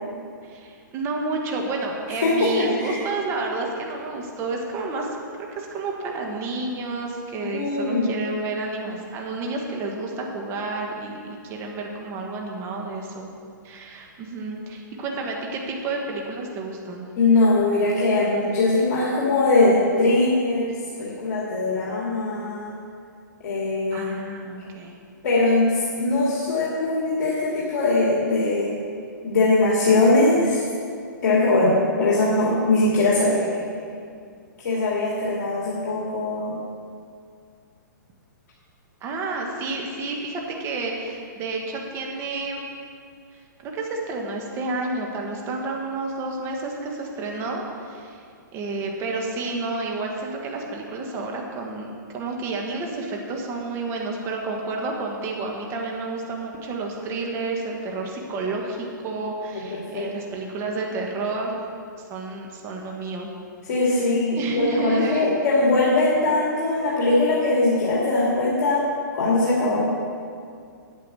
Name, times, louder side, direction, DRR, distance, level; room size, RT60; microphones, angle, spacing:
voice 1, 0.4-5.1 5.4-13.3 13.6-17.0 23.9-24.9 31.3-31.8 39.0-42.6 43.3-48.2 48.5-61.6 62.1-63.3 64.3-65.3, right 3 dB, 25° right, 0 dB, 1.4 m, -30 dB
voice 2, 2.2-3.0 7.5-8.1 17.2-22.8 23.4-24.1 25.2-28.8 29.2-30.6 31.2-33.7 34.6-36.5 59.5-60.1 63.7-68.8 69.1-69.9, left 2 dB, 55° left, -6 dB, 2.7 m, -21 dB
9.8 x 8.9 x 6.3 m, 2.3 s
hypercardioid pair, 150°, 11 cm